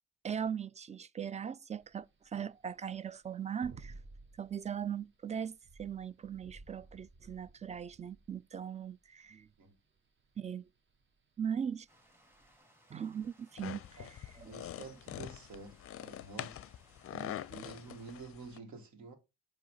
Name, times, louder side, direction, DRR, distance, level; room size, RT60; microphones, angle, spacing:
voice 1, 0.2-3.9 4.4-9.5 10.4-10.7 11.4-11.9 12.9-14.5 17.5-17.6, right 8 dB, 25° right, 0.3 m, -39 dB
sound 1, 1.7-12.6, right 3 dB, 40° right, 1.1 m, -56 dB
Stream, 11.9-18.2, equal, 10° right, 2.1 m, -66 dB
sound 2, 13.6-18.6, left 12 dB, 50° left, 0.5 m, -45 dB
voice 2, 14.5-16.6 17.1-19.1, right 4 dB, 75° right, 1.9 m, -49 dB
7.7 x 3.0 x 5.5 m
cardioid pair, 90°, 30 cm